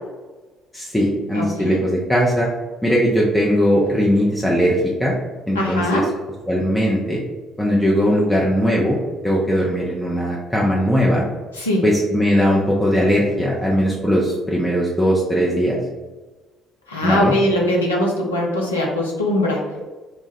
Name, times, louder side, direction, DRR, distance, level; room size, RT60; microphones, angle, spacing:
voice 1, 0.7-2.5 2.8-5.1 5.5-6.0 6.5-7.2 7.6-9.0 9.2-11.2 11.8-15.8 17.0-17.4, equal, 5° left, -5 dB, 0.7 m, -19 dB
voice 2, 1.3-1.8 5.5-6.1 11.5-11.9 16.9-19.8, left 1 dB, 85° left, -2 dB, 0.6 m, -21 dB
3.1 x 2.3 x 4.1 m, 1.2 s
figure-of-eight pair, 50°, 0 cm